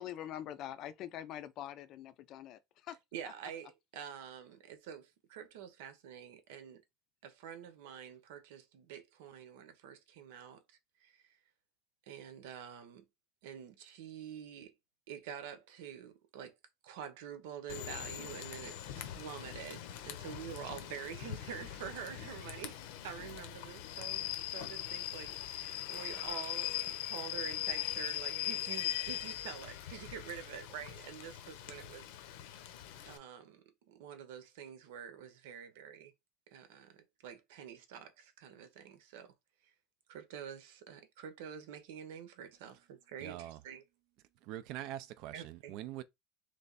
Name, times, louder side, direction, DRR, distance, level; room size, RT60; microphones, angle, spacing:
voice 1, 0.0-2.6 2.9-3.0, left 11 dB, 40° left, 0.4 m, -44 dB
voice 2, 2.9-6.8 7.2-11.4 12.1-13.0 13.4-14.7 15.1-16.6 16.8-32.1 33.1-36.1 36.5-39.3 40.1-43.8 45.3-45.7, right 8 dB, 85° right, 1.0 m, -47 dB
Rain / Train, 17.7-33.2, left 13 dB, 75° left, 0.7 m, -41 dB
voice 3, 43.2-43.6 44.4-46.0, right 13 dB, 50° right, 0.4 m, -43 dB
3.3 x 3.3 x 4.0 m
cardioid pair, 175°, 0 cm